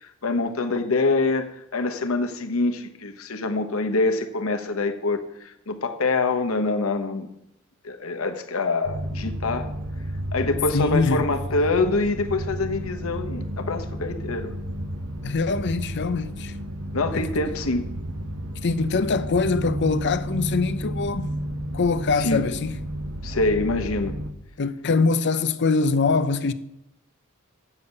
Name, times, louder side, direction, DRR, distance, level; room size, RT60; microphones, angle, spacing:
voice 1, 0.0-7.3 7.8-9.7 10.3-14.5 16.9-17.9 22.1-22.5 23.2-24.1, left 3 dB, 70° left, 1.1 m, -25 dB
sound 1, 8.8-24.3, right 1 dB, 85° right, 1.0 m, -32 dB
voice 2, 10.7-11.2 15.2-16.5 17.1-17.2 18.6-21.3 21.7-22.8 24.6-26.5, left 4 dB, 55° left, 0.6 m, -23 dB
7.1 x 7.0 x 8.1 m
head